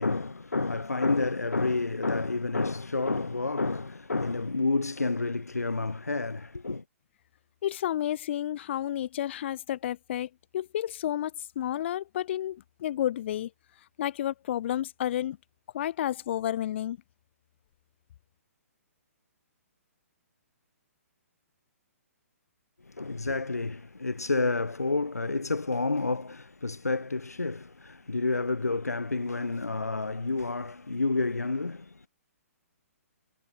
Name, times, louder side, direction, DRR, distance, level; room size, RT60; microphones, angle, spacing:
voice 1, 0.0-6.8 22.9-32.1, left 3 dB, 90° left, 1.4 m, -29 dB
voice 2, 7.6-13.5 14.0-15.4 15.7-17.0, left 12 dB, 50° left, 3.2 m, -31 dB
figure-of-eight pair, 130°, 8 cm